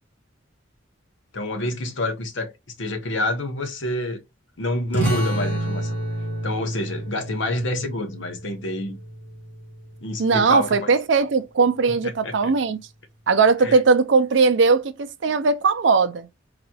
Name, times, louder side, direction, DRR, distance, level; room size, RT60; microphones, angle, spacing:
voice 1, 1.3-2.5 2.8-4.2 4.6-6.0 6.4-9.0 10.0-10.9 12.2-12.5 13.6-13.7, left 1 dB, 70° left, 0.9 m, -27 dB
sound 1, 4.9-10.1, right 1 dB, 10° left, 1.6 m, -29 dB
voice 2, 10.2-12.8 13.3-16.4, right 4 dB, 65° right, 0.5 m, -19 dB
4.0 x 2.8 x 2.3 m
head